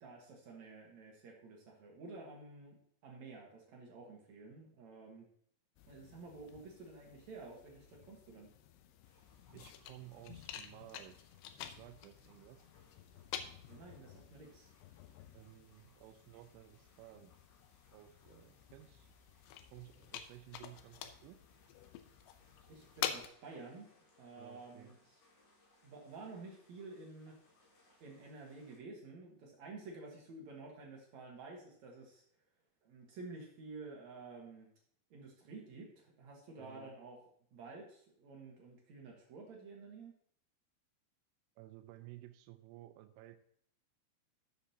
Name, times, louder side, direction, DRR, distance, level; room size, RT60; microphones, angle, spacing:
voice 1, 0.0-5.3 5.9-8.5 13.7-14.7 22.7-23.9 24.2-24.9 25.8-27.3 28.0-32.2 32.8-34.7 35.1-37.2 37.5-40.1, right 3 dB, 70° right, -1 dB, 1.7 m, -51 dB
sound 1, 5.8-23.3, left 10 dB, 85° left, 2.4 m, -49 dB
sound 2, 9.0-28.8, left 2 dB, 65° left, 5.6 m, -71 dB
voice 2, 9.5-11.2 11.8-12.7 15.3-17.3 17.9-19.1 19.7-21.4 24.4-24.9 36.6-37.0 41.6-43.4, right 15 dB, 85° right, 7 dB, 3.0 m, -55 dB
13.0 x 7.1 x 2.8 m, 0.65 s
omnidirectional pair, 5.4 m